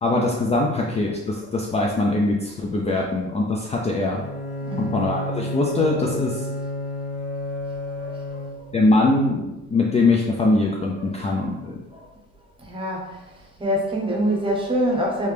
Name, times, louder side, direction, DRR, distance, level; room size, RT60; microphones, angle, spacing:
voice 1, 0.0-4.2 4.8-6.5 8.7-9.4 9.7-11.7, left 2 dB, 25° left, -1 dB, 0.4 m, -22 dB
Bowed string instrument, 4.1-8.9, left 1 dB, 60° left, 0.7 m, -30 dB
voice 2, 8.0-8.7 11.9-12.0 12.6-13.1 13.6-15.3, equal, 20° right, -2 dB, 0.9 m, -25 dB
3.2 x 2.8 x 3.3 m, 1.0 s
cardioid pair, 105°, 29 cm